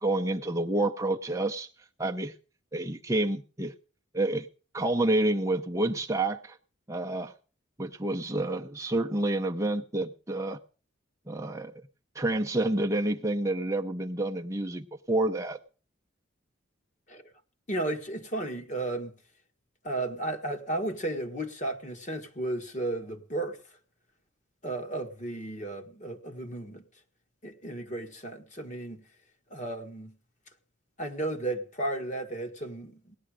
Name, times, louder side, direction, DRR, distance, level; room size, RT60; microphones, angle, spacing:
voice 1, 0.0-1.7 2.0-2.3 2.7-3.7 4.1-4.5 4.7-6.6 6.9-7.3 7.8-10.6 11.3-11.7 12.1-15.6, right 2 dB, 15° right, 0.6 m, -28 dB
voice 2, 17.7-19.1 19.8-23.6 24.6-26.8 27.4-29.0 29.5-30.1 31.0-33.2, right 2 dB, 40° left, 1.7 m, -34 dB
18.0 x 11.0 x 5.0 m
head